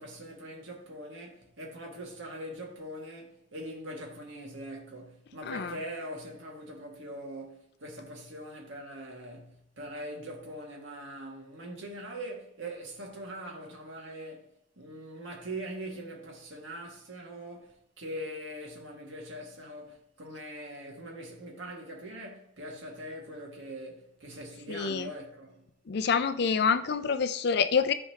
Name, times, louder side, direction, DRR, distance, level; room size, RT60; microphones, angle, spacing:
voice 1, 0.0-14.5 14.8-25.7, right 1 dB, 80° right, 1.9 m, -42 dB
voice 2, 5.4-5.8 24.7-25.1 25.9-27.9, left 6 dB, 55° left, 0.4 m, -27 dB
12.0 x 4.4 x 2.8 m
head